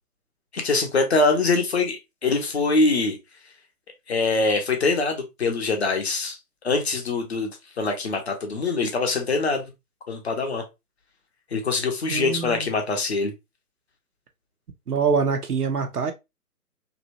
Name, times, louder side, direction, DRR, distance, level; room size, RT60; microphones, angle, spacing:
voice 1, 0.5-3.2 4.1-6.4 6.6-7.5 7.8-9.7 10.1-10.6 11.5-13.3, left 3 dB, 45° left, 0.8 m, -23 dB
voice 2, 12.1-12.7 14.9-16.1, right 5 dB, 75° right, 0.6 m, -24 dB
2.8 x 2.1 x 2.6 m
figure-of-eight pair, 135°, 46 cm